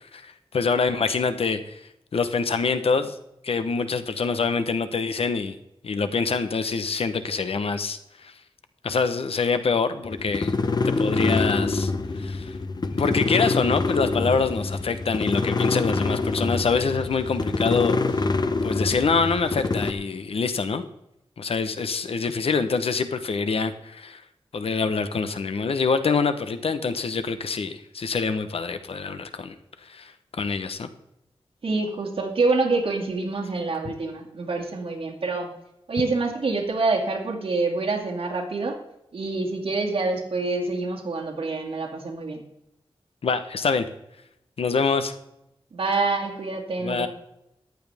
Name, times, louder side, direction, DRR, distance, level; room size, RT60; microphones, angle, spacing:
voice 1, 0.1-1.8 2.1-3.2 3.4-5.6 5.8-8.3 8.8-10.5 10.8-11.9 12.2-12.6 12.8-18.3 18.6-20.8 21.4-24.2 24.5-29.5 29.9-30.9 33.8-33.9 43.2-43.9 44.6-45.1 46.8-47.1, left 5 dB, 80° left, 10 dB, 1.0 m, -25 dB
sound 1, 10.1-19.9, left 3 dB, 45° left, 0.8 m, -26 dB
voice 2, 31.6-35.5 35.9-38.8 39.1-42.4 45.7-47.1, right 3 dB, 65° right, 1 dB, 2.4 m, -26 dB
14.0 x 10.5 x 3.5 m, 0.83 s
wide cardioid pair, 110°, 10 cm